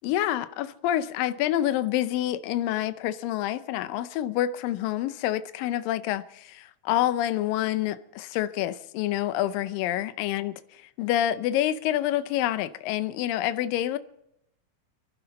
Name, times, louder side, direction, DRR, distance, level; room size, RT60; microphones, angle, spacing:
voice 1, 0.0-14.0, left 12 dB, 80° left, 2.4 m, -27 dB
25.5 x 11.5 x 4.1 m
omnidirectional pair, 4.0 m